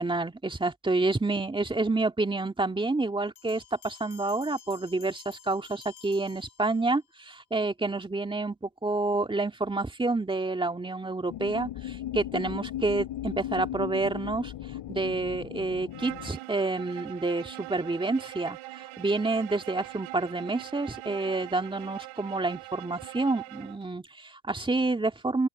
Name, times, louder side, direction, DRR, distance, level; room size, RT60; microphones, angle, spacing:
voice 1, 0.0-14.5 14.9-25.5, right 3 dB, 10° right, 2.4 m, -29 dB
Bell, 3.4-7.1, left 8 dB, 40° left, 6.2 m, -52 dB
sound 1, 11.3-16.3, left 12 dB, 60° left, 4.5 m, -37 dB
Bowed string instrument, 15.9-23.8, right 21 dB, 80° right, 4.2 m, -43 dB
open air
cardioid pair, 105°, 48 cm